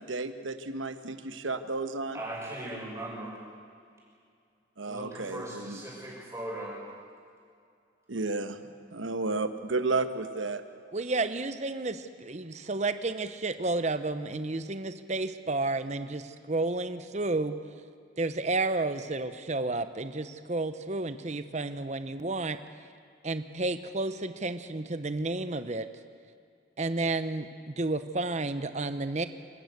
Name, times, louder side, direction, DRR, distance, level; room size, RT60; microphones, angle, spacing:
voice 1, 0.0-2.2 4.8-5.8 8.1-8.6 8.9-10.6, right 3 dB, 90° right, 9 dB, 1.2 m, -32 dB
voice 2, 2.1-3.3 4.8-6.8, right 1 dB, 15° right, -5 dB, 6.5 m, -38 dB
voice 3, 10.9-17.6 18.2-22.6 23.2-25.8 26.8-29.3, right 2 dB, 35° right, 10 dB, 0.8 m, -31 dB
26.5 x 14.0 x 8.2 m, 2.3 s
head